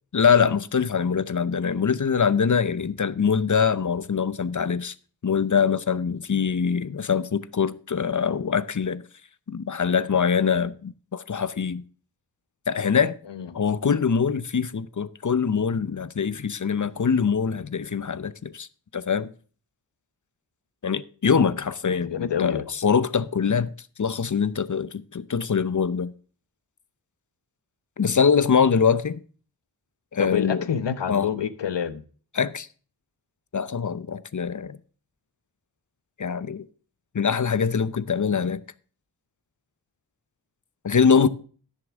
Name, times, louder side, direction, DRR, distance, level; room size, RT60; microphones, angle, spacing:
voice 1, 0.1-4.9 5.2-9.0 9.5-11.8 12.7-13.2 13.5-18.7 18.9-19.3 20.8-23.7 24.0-26.1 28.0-29.2 30.1-30.7 31.1-31.3 32.3-32.7 33.5-34.8 36.2-36.6 37.1-38.6 40.8-41.3, left 6 dB, 45° left, 0.7 m, -23 dB
voice 2, 22.0-22.7 30.2-32.0, left 8 dB, 75° left, 1.0 m, -27 dB
15.5 x 6.8 x 3.6 m
cardioid pair, 50°, 43 cm